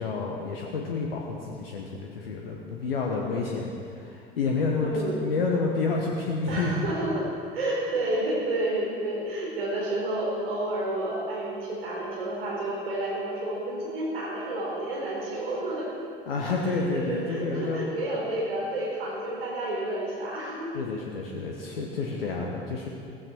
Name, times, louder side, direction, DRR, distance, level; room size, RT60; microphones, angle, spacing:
voice 1, 0.0-6.9 16.3-17.8 20.7-22.9, left 4 dB, 75° left, -1 dB, 1.4 m, -29 dB
voice 2, 4.8-5.3 6.5-7.3 7.5-15.9 16.6-20.7, right 1 dB, 75° right, -4 dB, 4.6 m, -30 dB
15.5 x 15.0 x 4.6 m, 2.5 s
figure-of-eight pair, 65°, 30 cm